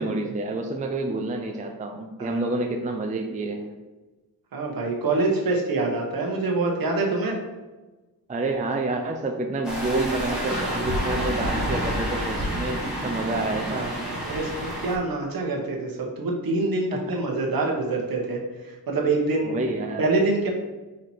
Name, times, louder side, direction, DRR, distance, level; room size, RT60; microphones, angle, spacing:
voice 1, 0.0-3.7 8.3-13.9 16.9-17.2 19.5-20.0, right 2 dB, 20° right, 3 dB, 0.5 m, -28 dB
voice 2, 4.5-7.4 13.3-19.6 20.0-20.5, right 3 dB, 65° right, 0 dB, 1.3 m, -26 dB
sound 1, 9.6-15.0, equal, ahead, 1.8 m, -29 dB
5.0 x 4.2 x 4.5 m, 1.2 s
wide cardioid pair, 155°, 39 cm